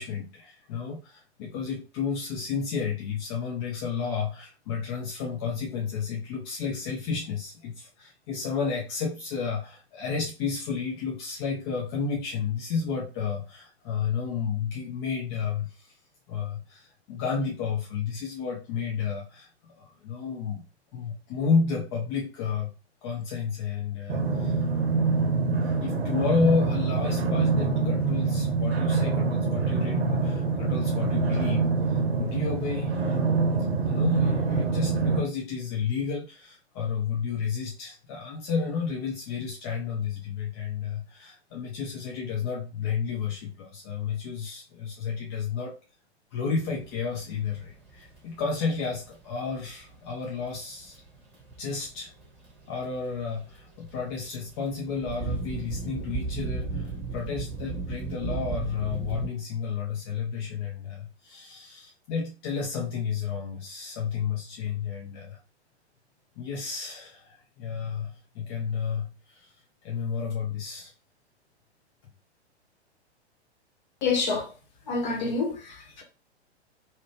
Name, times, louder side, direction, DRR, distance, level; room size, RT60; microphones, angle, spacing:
voice 1, 0.0-15.9 16.3-19.5 19.8-20.6 20.9-22.7 23.0-24.6 24.9-33.2 33.6-45.8 46.3-51.0 51.6-52.1 52.7-65.4 66.4-69.5 69.8-70.9, left 5 dB, 25° left, 0.5 m, -31 dB
sound 1, 24.1-35.2, right 4 dB, 60° right, 0.7 m, -25 dB
sound 2, 46.6-59.3, right 4 dB, 5° right, 1.4 m, -37 dB
voice 2, 74.0-74.5 74.9-76.0, left 4 dB, 40° left, 1.3 m, -27 dB
2.8 x 2.5 x 3.3 m
figure-of-eight pair, 110°, 34 cm